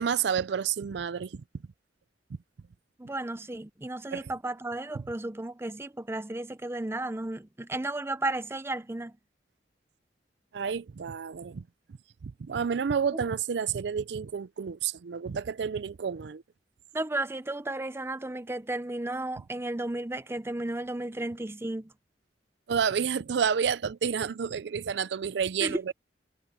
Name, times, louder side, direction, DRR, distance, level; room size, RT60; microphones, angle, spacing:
voice 1, 0.0-1.4 4.1-4.3 10.5-11.6 12.2-16.4 22.7-25.9, right 7 dB, 70° right, 0.4 m, -30 dB
voice 2, 3.0-9.1 16.9-21.9 25.6-25.9, right 2 dB, 15° right, 0.6 m, -33 dB
head